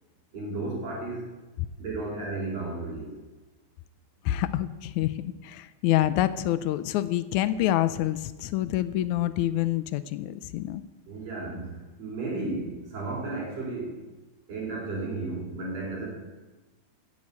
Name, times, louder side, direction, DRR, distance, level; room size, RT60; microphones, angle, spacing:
voice 1, 0.3-1.3 1.8-3.1 11.1-14.0 14.5-16.1, right 3 dB, 60° right, -2 dB, 5.5 m, -33 dB
voice 2, 4.3-10.8, left 13 dB, 80° left, 14 dB, 2.0 m, -27 dB
16.0 x 7.6 x 8.5 m, 1.2 s
omnidirectional pair, 3.4 m